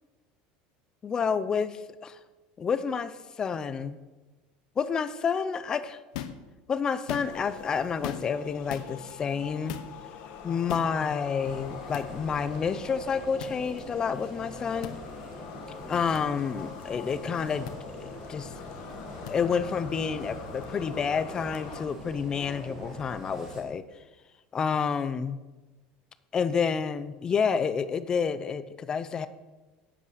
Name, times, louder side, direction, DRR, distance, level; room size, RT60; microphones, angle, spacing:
voice 1, 1.0-2.2 2.6-4.0 4.8-6.0 6.7-9.8 10.4-15.0 15.9-18.5 19.3-23.8 24.5-25.4 26.3-29.3, left 6 dB, 20° left, 13 dB, 0.5 m, -29 dB
sound 1, 6.1-6.4 7.0-7.5 8.0-8.4 8.7-8.9 9.7-9.9 10.7-10.9 11.9-12.1 13.4-13.6 14.8-15.0 16.1-16.2 17.7-17.8 19.3-19.4, left 11 dB, 85° left, 1.0 m, -37 dB
sound 2, 7.2-21.8, left 7 dB, 45° left, 1.3 m, -44 dB
sound 3, 11.4-23.6, equal, 10° right, 2.7 m, -44 dB
10.5 x 8.6 x 6.4 m, 1.2 s
cardioid pair, 170°, 4 cm